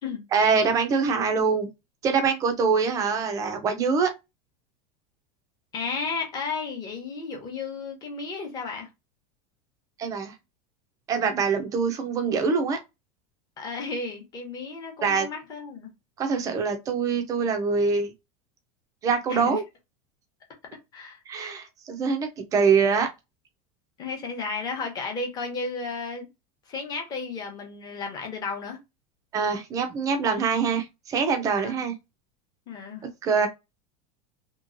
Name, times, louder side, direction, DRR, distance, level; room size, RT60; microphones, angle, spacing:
voice 1, 0.3-1.7 2.0-4.1 10.0-10.3 11.1-12.8 15.0-15.3 16.2-18.1 19.0-19.6 21.3-23.1 29.3-31.9 33.2-33.5, right 5 dB, 15° right, 0.5 m, -24 dB
voice 2, 5.7-8.9 13.6-15.9 19.3-19.6 20.9-21.2 24.0-26.3 26.7-28.8 31.5-31.7 32.7-33.1, left 4 dB, 20° left, 0.9 m, -33 dB
3.0 x 2.8 x 2.5 m
supercardioid pair, 175°, 20 cm